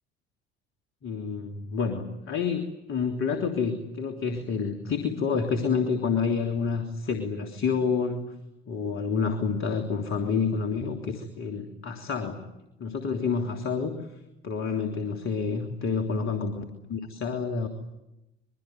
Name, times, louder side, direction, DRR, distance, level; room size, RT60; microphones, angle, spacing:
voice 1, 1.0-8.3 8.7-12.4 12.8-14.0 14.4-17.7, left 5 dB, 45° left, 5 dB, 3.3 m, -28 dB
25.5 x 23.5 x 9.4 m, 0.91 s
hypercardioid pair, 65°, 31 cm